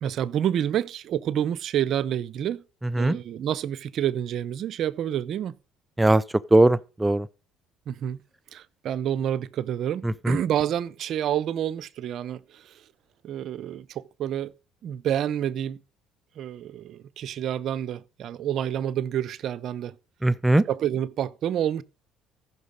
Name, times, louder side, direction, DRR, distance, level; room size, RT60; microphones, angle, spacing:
voice 1, 0.0-2.6 3.0-5.5 7.9-8.2 8.5-12.7 13.2-14.5 14.8-15.8 16.4-19.9 20.7-21.8, right 10 dB, 60° right, 0.6 m, -28 dB
voice 2, 6.5-7.3 10.0-10.4 20.2-20.6, right 2 dB, 15° right, 0.5 m, -20 dB
14.5 x 6.0 x 5.2 m
supercardioid pair, 70°, 0 cm